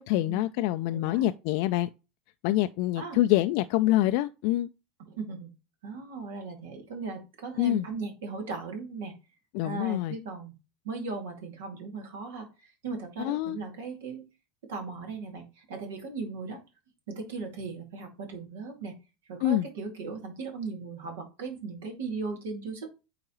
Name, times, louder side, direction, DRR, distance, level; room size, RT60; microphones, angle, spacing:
voice 1, 0.0-1.9 2.4-4.7 7.6-7.9 9.5-10.2 13.2-13.6 19.4-19.7, left 15 dB, 65° left, 0.3 m, -26 dB
voice 2, 0.9-1.3 3.0-3.2 5.0-5.5 5.8-9.1 9.6-10.5 10.8-14.3 14.6-16.6 17.1-18.9 19.3-22.9, right 4 dB, 75° right, 2.3 m, -38 dB
8.9 x 3.8 x 3.0 m
hypercardioid pair, 85°, 0 cm